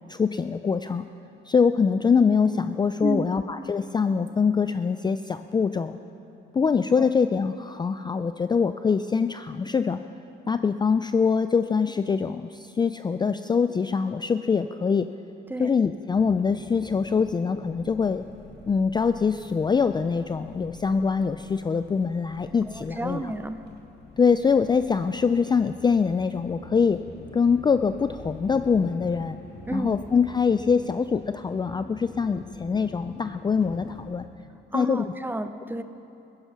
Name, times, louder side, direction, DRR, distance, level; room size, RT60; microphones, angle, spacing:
voice 1, 0.1-1.1 1.5-6.0 6.5-10.0 10.5-15.1 15.6-18.2 18.7-23.3 24.2-27.0 27.3-29.4 29.7-34.2 34.7-35.0, left 5 dB, 20° left, 10 dB, 0.3 m, -24 dB
sound 1, 16.1-34.3, left 2 dB, 60° left, 1.7 m, -47 dB
voice 2, 22.7-23.6 29.7-30.0 34.7-35.8, right 2 dB, 10° right, 10 dB, 0.7 m, -31 dB
15.5 x 10.5 x 5.6 m, 3.0 s
cardioid pair, 90°, 20 cm